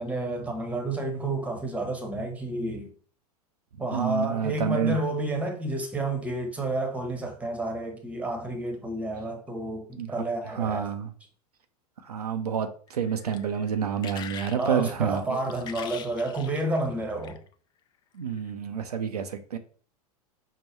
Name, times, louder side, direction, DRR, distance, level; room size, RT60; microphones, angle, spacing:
voice 1, 0.0-2.9 3.8-10.9 14.5-17.4, right 2 dB, 5° right, 0.9 m, -30 dB
voice 2, 3.9-5.0 10.0-10.2 10.5-11.1 12.0-15.4 18.1-19.6, right 7 dB, 80° right, 0.5 m, -29 dB
sound 1, 12.9-17.5 18.3-18.5, left 8 dB, 25° left, 0.3 m, -44 dB
5.5 x 2.1 x 3.1 m
figure-of-eight pair, 90°, 19 cm